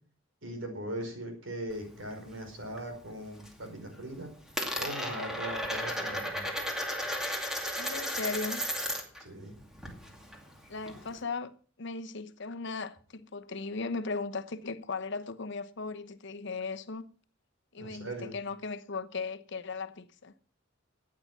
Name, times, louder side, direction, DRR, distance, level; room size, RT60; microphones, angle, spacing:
voice 1, 0.4-4.3 4.7-6.5 9.2-9.5 17.8-18.3, right 1 dB, 70° right, 5.0 m, -40 dB
Coin (dropping), 1.7-2.9 3.2-3.7 3.9-9.2 9.5-11.2, equal, 5° right, 2.4 m, -35 dB
voice 2, 7.8-8.6 10.7-11.5 11.8-17.1 17.7-20.3, left 4 dB, 65° left, 1.0 m, -37 dB
14.5 x 8.9 x 6.0 m
head